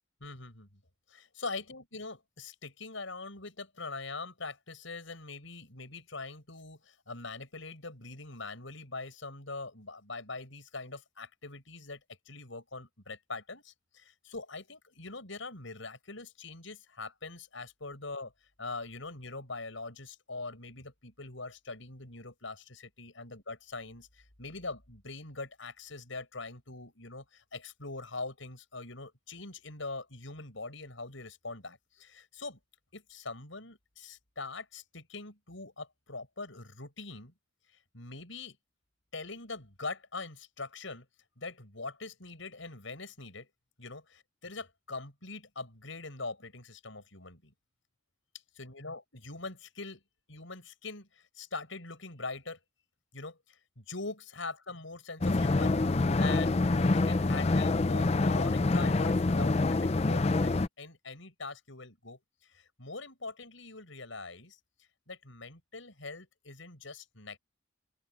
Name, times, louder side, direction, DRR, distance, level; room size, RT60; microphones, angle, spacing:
voice 1, 0.2-0.8 1.1-12.0 12.2-18.3 18.6-32.6 32.9-37.3 37.9-38.6 39.1-41.0 41.4-43.5 43.8-47.5 48.5-50.0 50.3-52.6 53.1-55.8 56.2-64.6 65.1-67.4, left 3 dB, 85° left, 6.7 m, -43 dB
sound 1, 55.2-60.7, left 3 dB, 35° left, 0.5 m, -26 dB
open air
head